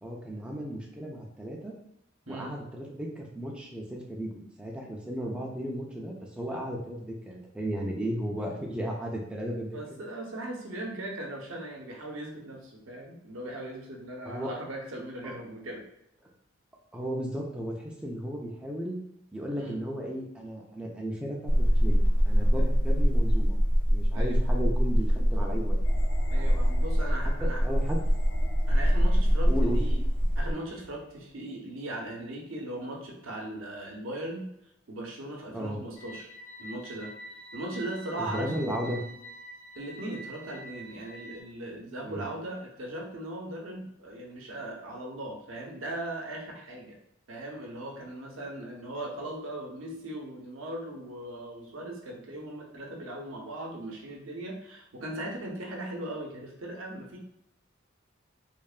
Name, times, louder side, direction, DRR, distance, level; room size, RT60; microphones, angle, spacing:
voice 1, 0.0-1.7 2.3-9.8 14.3-14.6 15.2-15.3 16.9-19.0 19.3-23.6 23.9-25.8 27.4-28.0 29.5-29.8 35.5-35.8 38.2-39.1 42.0-42.2, equal, 5° right, -2 dB, 0.3 m, -35 dB
voice 2, 9.7-15.8 19.6-19.8 22.5-22.6 24.1-24.4 26.3-27.6 28.7-30.0 30.4-34.5 34.9-36.3 36.6-37.1 37.5-38.5 39.7-47.0 47.3-57.2, right 1 dB, 85° right, 0 dB, 0.6 m, -38 dB
sound 1, 21.5-30.5, equal, 45° left, 0.7 m, -24 dB
sound 2, 25.8-31.3, left 1 dB, 85° left, 0.6 m, -45 dB
sound 3, 35.9-41.4, equal, 70° left, 1.1 m, -46 dB
3.1 x 2.1 x 2.4 m, 0.79 s
head